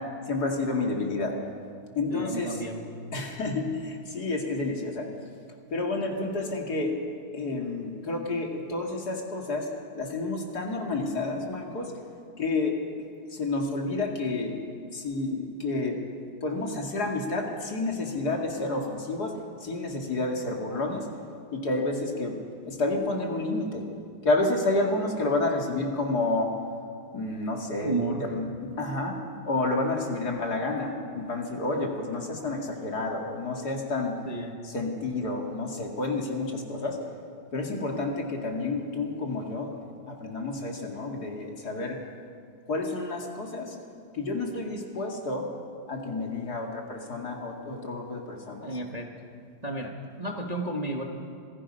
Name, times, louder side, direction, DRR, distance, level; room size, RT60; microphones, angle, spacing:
voice 1, 0.3-1.4 2.0-2.6 3.1-5.1 5.7-6.9 7.3-9.7 9.9-11.9 12.4-12.8 13.3-14.6 14.9-16.0 16.4-19.3 19.6-21.1 21.5-22.3 22.7-23.8 24.2-26.5 27.1-29.2 29.5-34.1 34.6-37.0 37.5-39.7 40.1-42.0 42.7-43.8 44.1-45.5 45.9-48.7 48.9-49.0, left 2 dB, 55° left, 1 dB, 2.8 m, -30 dB
voice 2, 2.1-2.8 27.8-28.3 34.2-34.5 48.6-49.1 49.6-51.0, right 2 dB, 20° right, 1 dB, 1.3 m, -32 dB
26.5 x 19.0 x 5.6 m, 2.3 s
omnidirectional pair, 2.1 m